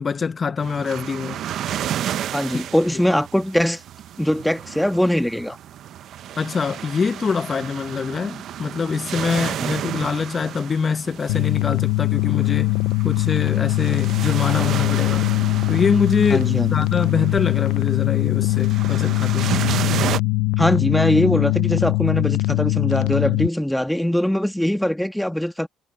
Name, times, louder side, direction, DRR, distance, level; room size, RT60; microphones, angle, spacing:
voice 1, 0.0-1.4 2.5-2.6 2.9-3.0 6.4-12.7 13.0-15.2 15.7-19.6, left 5 dB, 35° left, 1.1 m, -24 dB
sound 1, 0.6-20.2, right 11 dB, 60° right, 0.8 m, -32 dB
voice 2, 2.3-3.8 4.2-5.6 9.6-9.9 16.3-16.9 20.6-25.7, equal, 5° left, 1.5 m, -22 dB
sound 2, 11.3-23.5, left 21 dB, 85° left, 0.6 m, -21 dB
cardioid pair, 95°, 0 cm